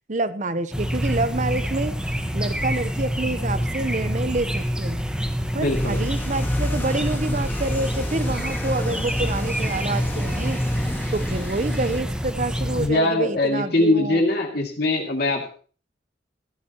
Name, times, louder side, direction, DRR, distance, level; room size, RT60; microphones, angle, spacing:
voice 1, 0.1-5.0 5.5-10.6 11.1-14.2, right 2 dB, 40° right, 12 dB, 0.9 m, -27 dB
sound 1, 0.7-12.9, equal, 5° right, 1.3 m, -26 dB
voice 2, 5.6-6.0 12.8-15.5, left 2 dB, 55° left, 1 dB, 2.4 m, -22 dB
sound 2, 5.7-12.0, left 1 dB, 10° left, 1.7 m, -32 dB
15.0 x 13.0 x 3.0 m, 0.41 s
head